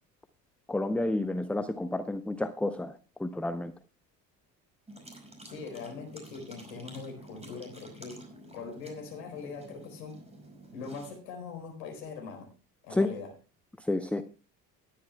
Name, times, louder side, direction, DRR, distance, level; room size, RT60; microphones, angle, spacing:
voice 1, 0.7-3.7 12.9-13.1 13.8-14.2, left 2 dB, 5° left, 11 dB, 0.6 m, -30 dB
sound 1, 4.9-11.2, right 1 dB, 15° right, 5.0 m, -50 dB
voice 2, 5.4-8.2 8.5-10.2 10.7-12.5 12.8-13.3, left 5 dB, 75° left, 3 dB, 4.3 m, -42 dB
20.0 x 10.0 x 2.2 m, 0.34 s
hypercardioid pair, 60°, 49 cm